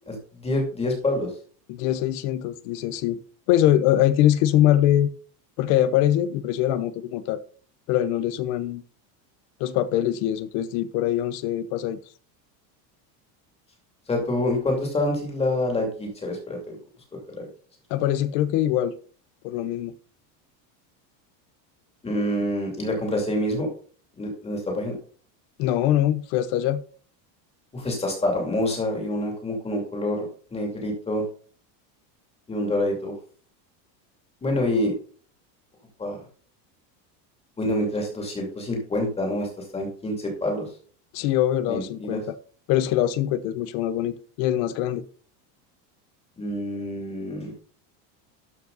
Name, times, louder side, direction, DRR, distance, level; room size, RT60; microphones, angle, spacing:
voice 1, 0.1-1.3 14.1-16.8 17.4-17.5 22.0-23.7 24.2-25.0 27.7-30.3 30.5-31.2 32.5-33.1 34.4-34.9 36.0-36.2 37.6-40.7 41.7-42.2 46.4-47.5, left 1 dB, 10° left, 2.7 m, -27 dB
voice 2, 1.7-3.2 3.5-5.1 5.6-7.4 7.9-8.8 9.6-12.0 17.9-19.0 19.4-19.9 25.6-26.8 41.1-42.4 42.7-45.0, left 12 dB, 55° left, 0.9 m, -23 dB
12.5 x 5.2 x 4.0 m
cardioid pair, 165°, 48 cm